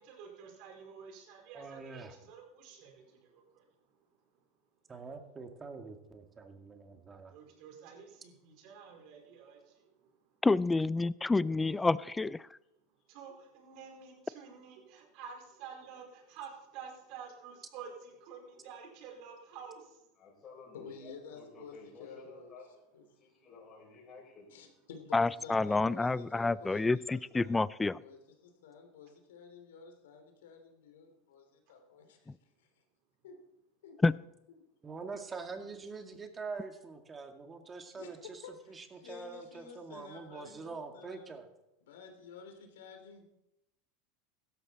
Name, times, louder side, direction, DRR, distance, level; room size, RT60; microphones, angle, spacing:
voice 1, 0.0-3.6 7.3-9.9 13.1-20.0 23.4-23.5, right 6 dB, 60° right, 1 dB, 4.7 m, -50 dB
voice 2, 1.5-2.1 4.9-7.4 34.8-38.4 38.7-41.5, right 4 dB, 20° right, 5 dB, 2.2 m, -44 dB
voice 3, 10.4-12.4 25.1-28.0 34.0-34.1, left 3 dB, 10° left, 20 dB, 0.4 m, -28 dB
voice 4, 11.4-12.0 20.2-24.7, left 4 dB, 35° left, -3 dB, 6.4 m, -54 dB
voice 5, 20.7-22.5 22.9-23.0 24.5-27.6 28.0-32.7 33.2-33.4 33.8-34.0 34.5-34.6 37.9-41.4 41.8-43.2, left 5 dB, 85° left, 5 dB, 3.2 m, -51 dB
16.5 x 13.0 x 4.3 m, 0.88 s
hypercardioid pair, 105°, 0 cm